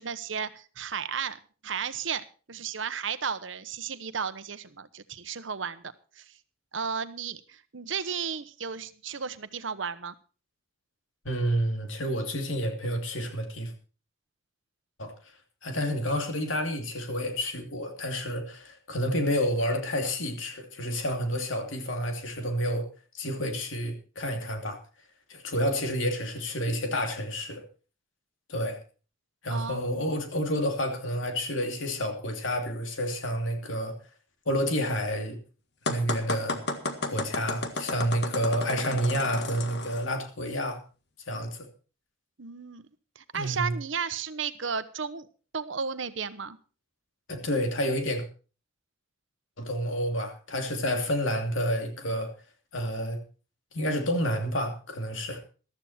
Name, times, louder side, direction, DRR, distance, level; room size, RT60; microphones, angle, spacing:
voice 1, 0.0-5.8 6.2-6.3 6.7-10.1 29.5-30.1 42.4-42.9 43.1-45.3 45.5-46.6, right 6 dB, 75° right, 12 dB, 1.0 m, -34 dB
voice 2, 11.2-13.7 15.0-15.1 15.6-22.9 23.1-24.8 25.3-27.6 28.5-28.8 29.4-33.9 34.5-35.4 35.9-36.6 37.1-40.8 41.3-41.7 43.3-43.8 47.3-48.2 49.6-52.3 52.7-53.2 53.7-55.4, equal, 80° left, 4 dB, 2.8 m, -29 dB
sound 1, 35.9-40.1, left 2 dB, 55° left, 1.7 m, -33 dB
14.5 x 13.0 x 4.4 m, 0.37 s
head